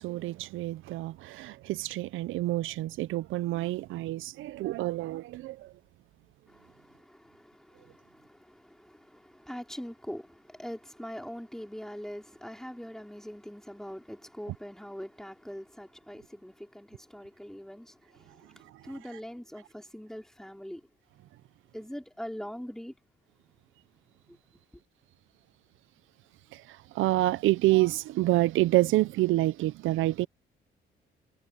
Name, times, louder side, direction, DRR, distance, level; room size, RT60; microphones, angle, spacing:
voice 1, 0.0-5.7 18.7-18.8 26.5-30.3, right 17 dB, 80° right, 0.5 m, -28 dB
voice 2, 6.5-20.9 21.7-22.9 24.3-24.4, equal, ahead, 4.6 m, -43 dB
cardioid pair, 90°, 20 cm